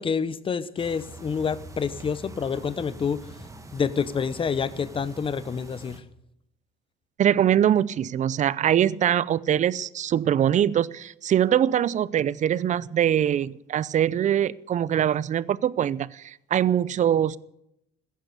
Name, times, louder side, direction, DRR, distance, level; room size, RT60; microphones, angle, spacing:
voice 1, 0.0-3.4 3.7-6.0, left 6 dB, 30° left, 0.9 m, -28 dB
sound 1, 0.8-6.0, right 2 dB, 20° right, 1.8 m, -44 dB
voice 2, 7.2-17.4, right 10 dB, 45° right, 0.6 m, -23 dB
15.0 x 10.5 x 8.2 m
cardioid pair, 110°, 17 cm